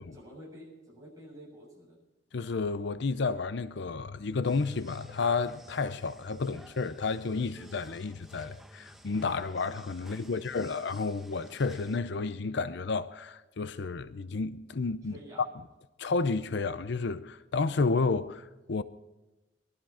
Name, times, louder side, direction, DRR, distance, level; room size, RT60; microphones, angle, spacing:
voice 1, 0.1-2.0 10.0-10.7 15.0-15.4, equal, 20° right, 7.1 m, -50 dB
voice 2, 2.3-15.1 16.0-18.8, left 4 dB, 65° left, 0.6 m, -31 dB
sound 1, 4.4-12.0, right 1 dB, ahead, 1.2 m, -54 dB
20.5 x 12.5 x 4.3 m
head